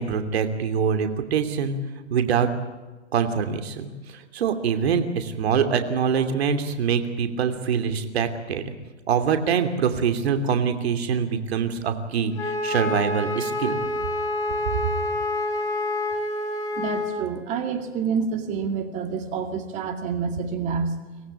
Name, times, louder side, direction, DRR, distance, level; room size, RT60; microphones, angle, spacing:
voice 1, 0.0-1.8 2.1-2.5 3.1-8.6 9.1-13.8, right 7 dB, 55° right, 8 dB, 2.9 m, -24 dB
Wind instrument woodwind instrument, 12.3-17.2, left 2 dB, 10° left, 5.3 m, -27 dB
voice 2, 16.8-21.0, right 5 dB, 20° right, 7 dB, 2.2 m, -28 dB
24.5 x 17.5 x 8.6 m, 1.2 s
hypercardioid pair, 155°, 36 cm